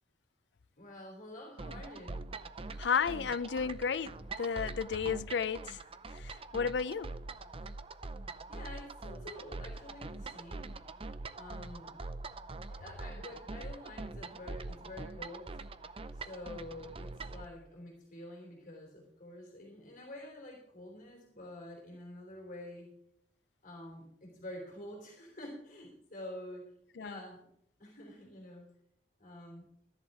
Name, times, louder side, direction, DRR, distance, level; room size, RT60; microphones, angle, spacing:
voice 1, 0.8-2.2 8.5-10.7 11.3-12.0 12.7-15.6 16.1-22.9 23.6-26.7 27.0-27.5 27.8-28.7 29.2-29.7, left 1 dB, 45° left, 3.5 m, -48 dB
sound 1, 1.6-17.5, right 3 dB, 30° right, 0.6 m, -44 dB
voice 2, 2.8-5.8 6.1-7.1 27.0-27.2, left 6 dB, 75° left, 0.5 m, -33 dB
14.0 x 10.5 x 4.9 m
head